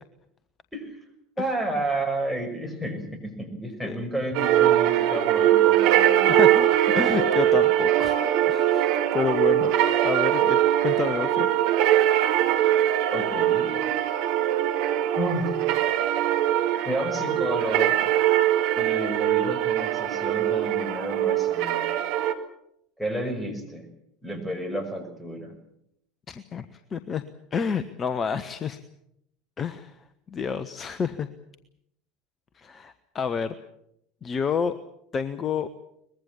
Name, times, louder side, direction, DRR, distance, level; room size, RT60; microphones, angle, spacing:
voice 1, 1.4-6.4 7.1-7.2 13.1-13.6 15.1-15.6 16.8-18.0 18.8-21.9 23.0-23.8 24.2-25.5, right 1 dB, 5° left, 6 dB, 6.3 m, -31 dB
sound 1, 4.3-22.3, right 12 dB, 55° right, 2.0 m, -22 dB
voice 2, 6.3-6.7 6.9-8.2 8.5-9.7 10.0-11.5 26.3-27.2 27.5-28.8 29.6-29.9 30.3-31.3 32.6-33.5 34.2-34.7 35.1-35.7, left 6 dB, 30° left, 12 dB, 1.1 m, -29 dB
23.0 x 21.0 x 7.3 m, 0.77 s
figure-of-eight pair, 70°, 0 cm